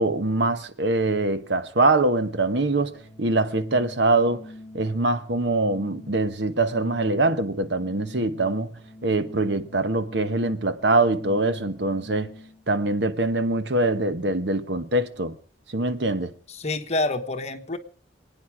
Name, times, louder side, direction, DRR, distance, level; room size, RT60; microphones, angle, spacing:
voice 1, 0.0-12.3 12.7-15.4 15.7-16.3, right 2 dB, 65° right, 1.1 m, -23 dB
Organ, 2.4-12.7, left 1 dB, 10° right, 2.6 m, -45 dB
voice 2, 16.5-17.8, left 2 dB, 35° left, 1.2 m, -27 dB
27.5 x 9.6 x 4.9 m
head